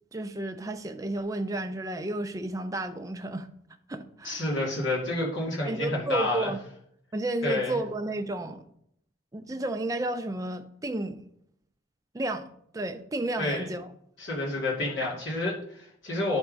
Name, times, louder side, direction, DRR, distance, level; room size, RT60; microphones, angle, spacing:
voice 1, 0.1-3.5 3.9-4.4 5.6-6.6 7.1-8.7 9.3-11.2 12.1-13.9, right 2 dB, 20° right, 0.5 m, -32 dB
voice 2, 4.2-6.5 7.4-7.8 13.4-13.7 14.2-16.4, left 2 dB, 80° left, 2.4 m, -29 dB
10.5 x 3.5 x 5.1 m
head